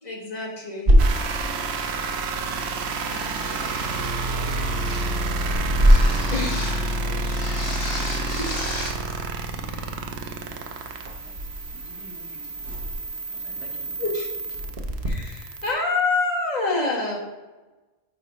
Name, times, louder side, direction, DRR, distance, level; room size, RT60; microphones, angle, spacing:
voice 1, 0.0-0.9 2.6-2.7 3.1-3.3 5.7-5.8 6.3-6.8 7.2-7.4 8.2-8.5 8.9-9.0 14.0-14.3 15.0-17.2, left 3 dB, 35° left, -4 dB, 1.7 m, -27 dB
sound 1, 0.9-15.1, equal, 50° right, 1.2 m, -27 dB
sound 2, 1.0-15.7, right 2 dB, 70° right, 0.9 m, -29 dB
voice 2, 2.4-4.7 6.7-8.2 8.6-10.9 11.2-11.4 11.7-14.0, right 2 dB, 85° right, -1 dB, 1.7 m, -48 dB
sound 3, 2.9-4.2 4.9-5.2 5.8-6.9 7.3-9.0, left 2 dB, 85° left, 1.6 m, -36 dB
8.9 x 4.9 x 3.0 m, 1.2 s
omnidirectional pair, 1.2 m